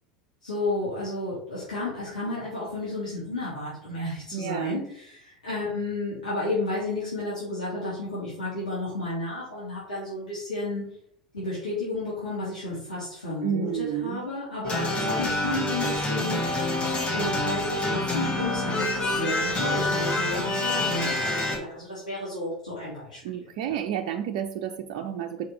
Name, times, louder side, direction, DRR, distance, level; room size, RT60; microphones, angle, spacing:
voice 1, 0.4-10.8 11.3-16.4 17.1-23.4 23.7-23.8, left 2 dB, 80° left, -9 dB, 3.3 m, -32 dB
voice 2, 4.3-4.8 13.4-14.2 23.2-25.5, right 9 dB, 55° right, 3 dB, 0.6 m, -30 dB
sound 1, 14.6-21.6, left 1 dB, 30° left, 2.3 m, -27 dB
6.5 x 4.8 x 4.7 m, 0.68 s
figure-of-eight pair, 75°, 4 cm